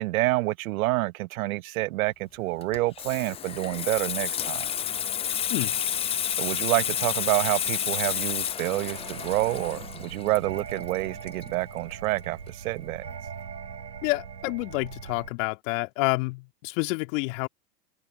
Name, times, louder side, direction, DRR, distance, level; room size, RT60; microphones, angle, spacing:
voice 1, 0.0-4.7 6.4-13.0, right 19 dB, 55° right, 1.2 m, -28 dB
Water tap faucet / Sink (filling or washing), 2.6-11.9 12.2-12.5, left 9 dB, 10° left, 0.5 m, -30 dB
sound 1, 8.8-15.3, right 7 dB, 85° right, 5.0 m, -41 dB
voice 2, 14.0-17.5, left 27 dB, 50° left, 2.1 m, -28 dB
hypercardioid pair, 100°, 50 cm